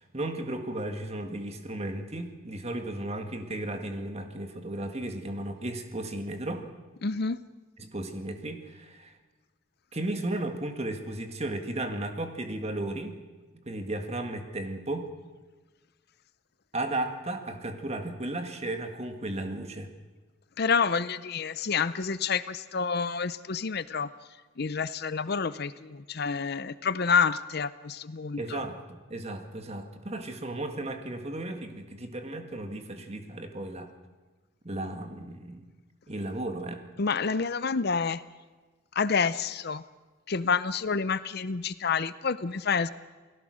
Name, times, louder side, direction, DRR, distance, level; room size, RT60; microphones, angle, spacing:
voice 1, 0.0-6.7 7.8-9.2 9.9-13.2 13.6-15.1 16.7-19.9 28.4-33.9 34.6-35.6 36.1-36.8, right 1 dB, 30° right, 6 dB, 1.9 m, -35 dB
voice 2, 7.0-7.4 20.6-24.1 24.6-28.6 37.0-38.2 38.9-39.8 40.3-42.9, left 5 dB, 50° left, 15 dB, 0.6 m, -28 dB
28.5 x 18.5 x 6.4 m, 1.3 s
head